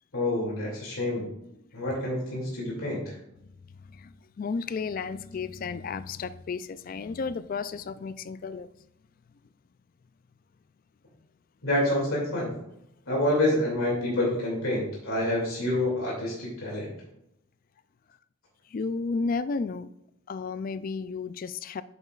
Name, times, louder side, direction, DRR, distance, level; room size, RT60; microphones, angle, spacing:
voice 1, 0.1-1.2 1.7-3.2 11.6-12.5 13.1-16.9, left 1 dB, 90° left, 2.6 m, -27 dB
voice 2, 3.9-8.7 18.7-19.9 20.3-21.8, left 4 dB, 40° left, 0.3 m, -33 dB
8.5 x 6.8 x 2.4 m
head